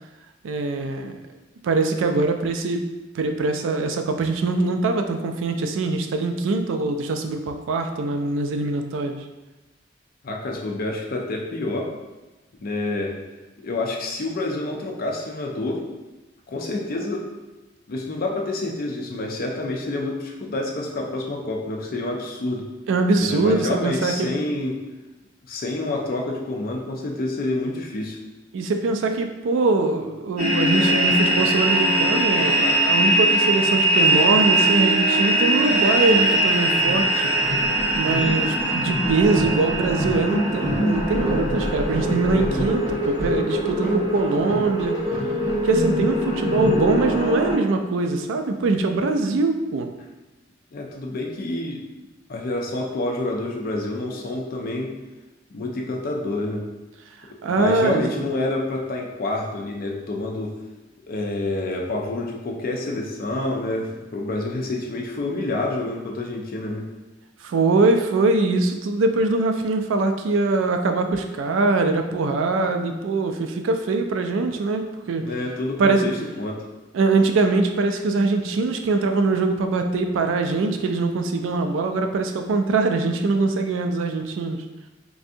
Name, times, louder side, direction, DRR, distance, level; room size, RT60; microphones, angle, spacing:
voice 1, 0.4-1.2 1.6-2.8 3.1-9.2 22.9-24.4 28.5-37.3 38.0-45.0 45.6-49.9 57.4-58.1 67.4-75.3 75.8-76.0 76.9-84.6, right 3 dB, 75° right, 5 dB, 0.3 m, -22 dB
voice 2, 10.2-11.9 12.6-13.2 13.6-15.8 16.5-17.3 17.9-22.7 23.2-24.8 25.5-28.2 42.0-42.7 50.7-51.8 52.3-54.9 55.5-56.6 57.5-60.5 61.0-66.9 75.2-76.7, left 2 dB, 50° left, 1 dB, 0.4 m, -28 dB
sound 1, 30.4-47.5, right 1 dB, 25° right, 1.3 m, -21 dB
3.3 x 2.6 x 2.6 m, 1.1 s
head